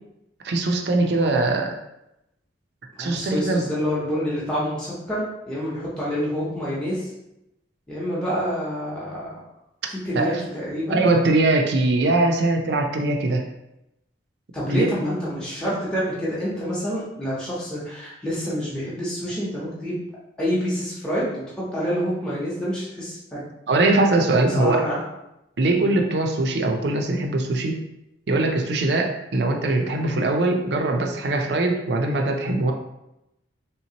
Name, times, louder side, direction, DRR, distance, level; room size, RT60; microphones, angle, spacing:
voice 1, 0.4-1.7 3.0-3.7 10.1-10.4 10.9-13.4 14.7-14.9 23.7-24.8 25.6-27.8 28.3-32.7, right 2 dB, 60° right, 3 dB, 0.5 m, -21 dB
voice 2, 3.0-7.1 7.9-9.4 10.0-11.1 14.5-20.0 20.4-23.4 24.6-25.0 25.8-26.0, equal, 5° left, -8 dB, 0.8 m, -27 dB
3.4 x 2.9 x 2.8 m, 0.87 s
head